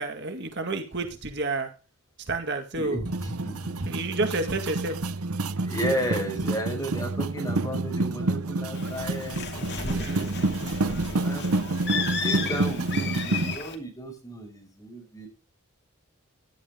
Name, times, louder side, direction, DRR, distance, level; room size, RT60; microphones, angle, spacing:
voice 1, 0.0-1.7 2.3-3.0 3.8-5.0 7.1-7.2 9.8-10.4, right 3 dB, 50° right, 6 dB, 1.9 m, -30 dB
voice 2, 2.7-3.9 5.6-11.5 12.2-15.3, right 1 dB, 15° left, 2 dB, 6.0 m, -34 dB
sound 1, 3.0-13.5, right 2 dB, 85° right, 0.9 m, -28 dB
Bird, 8.7-13.7, left 5 dB, 50° left, 2.6 m, -34 dB
Car / Engine, 9.0-13.5, right 1 dB, 30° right, 1.9 m, -49 dB
16.5 x 11.0 x 3.7 m, 0.33 s
head